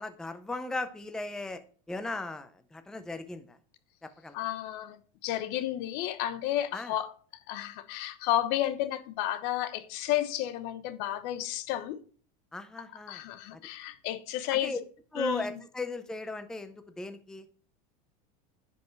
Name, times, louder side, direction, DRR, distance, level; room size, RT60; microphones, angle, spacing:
voice 1, 0.0-1.6 1.9-3.6 4.0-4.4 6.7-7.0 12.5-13.2 14.5-14.8 15.1-17.5, left 2 dB, 5° left, 0.5 m, -37 dB
voice 2, 4.3-5.0 5.2-7.1 7.5-12.0 13.1-14.7 15.2-15.6, left 13 dB, 60° left, 1.0 m, -32 dB
10.5 x 5.4 x 4.5 m
supercardioid pair, 145°, 18 cm